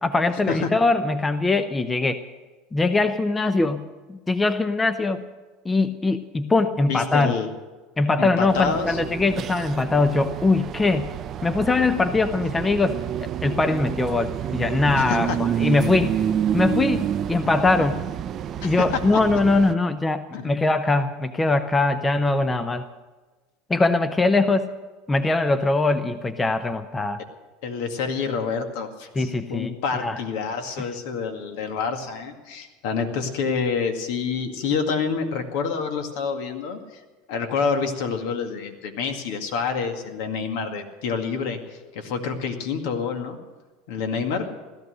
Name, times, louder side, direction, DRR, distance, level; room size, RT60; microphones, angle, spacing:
voice 1, 0.0-2.2 2.7-5.2 5.6-7.4 8.0-11.1 11.4-16.2 16.5-18.0 18.6-22.9 23.7-24.7 25.1-27.2 29.2-29.7 30.0-30.2 30.8-30.9, left 3 dB, 15° left, 10 dB, 0.7 m, -22 dB
voice 2, 6.9-7.5 8.2-9.0 15.0-15.4 18.6-19.0 20.3-20.5 27.6-36.8 37.3-43.4 43.9-44.5, left 5 dB, 75° left, 5 dB, 2.1 m, -27 dB
sound 1, 8.5-19.7, right 9 dB, 40° right, 0.6 m, -29 dB
16.5 x 13.5 x 6.5 m, 1.3 s
supercardioid pair, 115°, 0 cm